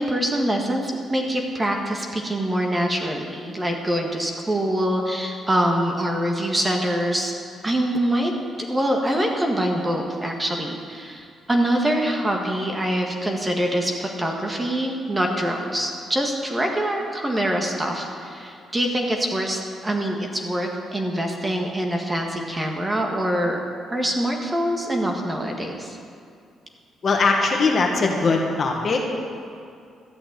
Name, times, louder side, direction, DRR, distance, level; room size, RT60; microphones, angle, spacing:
voice 1, 0.0-7.3 7.6-8.3 8.6-23.6 23.9-26.0, right 1 dB, 15° right, 1 dB, 1.6 m, -24 dB
voice 2, 27.0-29.2, left 3 dB, 45° left, 1 dB, 1.7 m, -21 dB
13.0 x 6.1 x 9.3 m, 2.4 s
cardioid pair, 90°, 0 cm